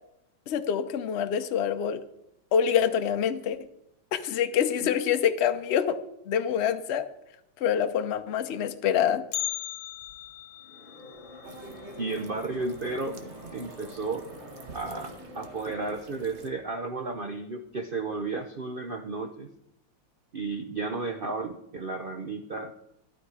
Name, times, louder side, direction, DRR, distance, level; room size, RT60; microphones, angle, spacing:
voice 1, 0.5-2.0 2.5-3.6 4.1-6.0 6.3-7.0 7.6-9.2, left 8 dB, 55° left, 8 dB, 0.8 m, -26 dB
Bell, 9.3-13.4 13.7-13.8 14.3-14.4 15.2-15.3 16.0-16.3 16.7-16.8, left 15 dB, 85° left, 1.5 m, -39 dB
sound 1, 10.5-15.9, left 2 dB, 25° right, 2.2 m, -48 dB
sound 2, 11.4-16.5, right 3 dB, 45° right, 1.2 m, -46 dB
voice 2, 12.0-13.2 13.5-14.3 14.7-19.5 20.3-22.7, right 3 dB, 75° right, 5 dB, 0.4 m, -33 dB
12.0 x 12.0 x 4.9 m, 0.82 s
omnidirectional pair, 2.0 m